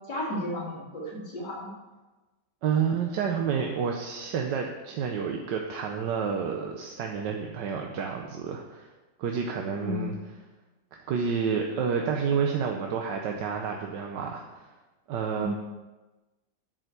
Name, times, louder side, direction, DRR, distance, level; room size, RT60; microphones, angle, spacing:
voice 1, 0.1-1.7 9.8-10.1 15.4-15.5, left 1 dB, 75° left, -3 dB, 2.9 m, -33 dB
voice 2, 2.6-8.9 9.2-10.1 11.1-14.7 15.1-15.5, right 6 dB, 80° right, 2 dB, 1.5 m, -29 dB
11.0 x 5.1 x 6.7 m, 1.2 s
omnidirectional pair, 1.9 m